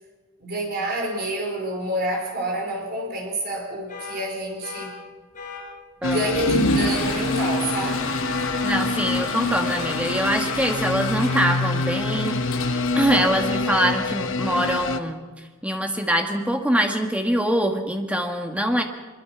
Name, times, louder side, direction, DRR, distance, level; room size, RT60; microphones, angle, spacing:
voice 1, 0.4-4.9 6.0-8.1, right 1 dB, 45° right, 1 dB, 4.6 m, -28 dB
sound 1, 3.9-4.2 4.6-4.9 5.3-5.6 6.1-6.3 6.8-7.1 7.5-7.8 8.3-8.5 9.0-9.3 9.7-10.0 10.5-10.7 11.2-11.5, left 6 dB, 35° left, 7.2 m, -37 dB
sound 2, 6.0-15.0, left 2 dB, 60° left, 1.0 m, -26 dB
Water / Toilet flush, 6.2-14.0, left 1 dB, 85° left, 5.9 m, -30 dB
voice 2, 8.6-12.4 12.9-15.2 15.6-18.8, equal, 5° right, 3 dB, 1.7 m, -23 dB
23.0 x 22.0 x 6.0 m, 1.3 s
head